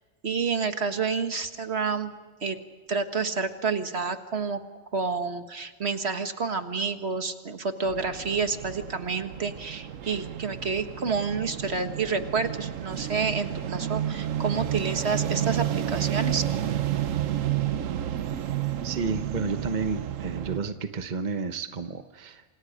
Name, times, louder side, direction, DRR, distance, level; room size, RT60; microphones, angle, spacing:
voice 1, 0.2-2.1 2.4-2.6 2.9-4.6 4.9-16.4, right 5 dB, 55° right, 7 dB, 1.8 m, -29 dB
sound 1, 7.8-20.6, right 11 dB, 85° right, 1.2 m, -31 dB
voice 2, 18.8-22.4, right 5 dB, 40° right, 7 dB, 1.1 m, -31 dB
28.0 x 27.0 x 5.1 m, 1.4 s
omnidirectional pair, 1.3 m